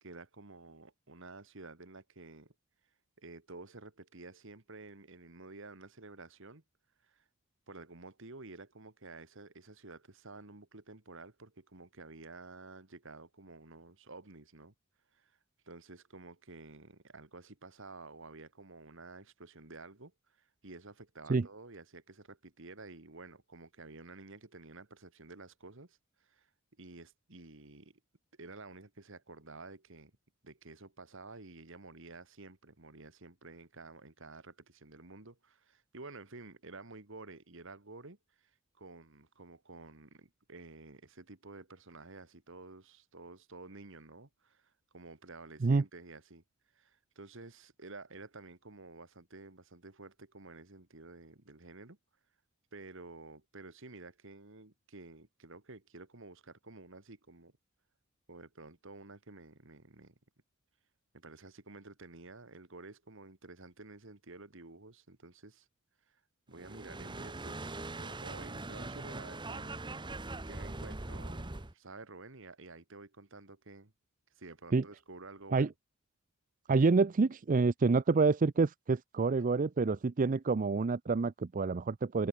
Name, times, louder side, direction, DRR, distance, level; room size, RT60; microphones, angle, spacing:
voice 1, 0.0-2.5 3.2-6.6 7.0-7.2 7.7-14.7 15.1-15.4 15.7-20.1 20.4-26.5 26.8-28.0 28.4-30.1 30.4-38.5 38.8-46.4 46.7-52.0 52.7-57.5 58.3-60.1 61.1-65.7 66.1-66.2 66.5-73.9 74.4-75.7, right 3 dB, 60° right, 2.1 m, -51 dB
sound 1, 66.5-71.7, right 2 dB, 20° right, 1.2 m, -42 dB
voice 2, 76.7-82.3, right 4 dB, 40° right, 0.4 m, -27 dB
head